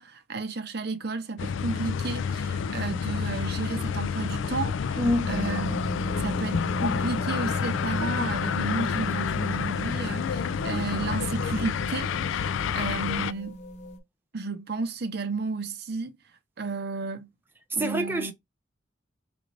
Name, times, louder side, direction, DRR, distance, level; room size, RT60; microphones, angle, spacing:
voice 1, 0.0-5.8 6.2-13.6 14.3-16.1 16.6-17.3 17.7-18.3, right 4 dB, 60° right, 0.7 m, -33 dB
sound 1, 1.4-13.3, left 6 dB, 80° left, 0.4 m, -29 dB
voice 2, 5.0-5.3 17.8-18.3, equal, 10° right, 0.6 m, -26 dB
sound 2, 5.3-14.0, equal, 35° left, 0.9 m, -37 dB
4.8 x 2.6 x 3.2 m
head